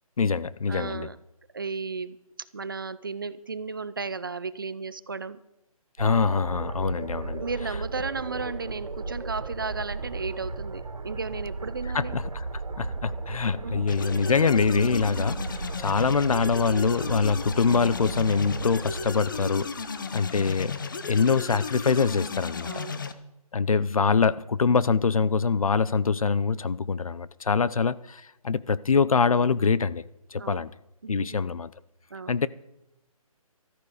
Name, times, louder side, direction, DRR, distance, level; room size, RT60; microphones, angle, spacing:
voice 1, 0.2-1.1 6.0-7.4 11.9-12.4 12.8-19.7 20.1-20.7 21.1-22.7 23.5-30.0 30.3-30.7 31.1-31.7 32.3-32.5, left 5 dB, 65° left, 0.7 m, -24 dB
voice 2, 0.7-1.2 1.5-2.2 2.5-5.4 7.4-12.1 13.6-13.9 22.6-23.0 27.6-27.7 30.4-30.6 31.0-31.4 32.1-32.4, right 4 dB, 35° right, 0.5 m, -34 dB
sound 1, 6.0-20.2, right 3 dB, 75° right, 2.1 m, -35 dB
sound 2, 13.9-23.1, left 5 dB, 35° left, 0.8 m, -35 dB
13.5 x 13.5 x 5.0 m
hypercardioid pair, 170°, 19 cm